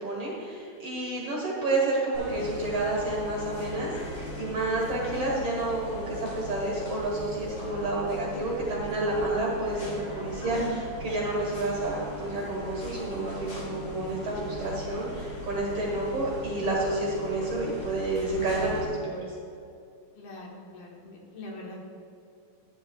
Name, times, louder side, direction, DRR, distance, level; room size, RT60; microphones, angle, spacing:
voice 1, 0.0-19.2, right 2 dB, 50° right, -4 dB, 2.0 m, -30 dB
sound 1, 2.1-18.8, left 1 dB, 55° left, 3.8 m, -38 dB
voice 2, 20.1-21.8, left 2 dB, 85° left, -2 dB, 3.3 m, -43 dB
11.0 x 10.5 x 2.4 m, 2.5 s
omnidirectional pair, 4.2 m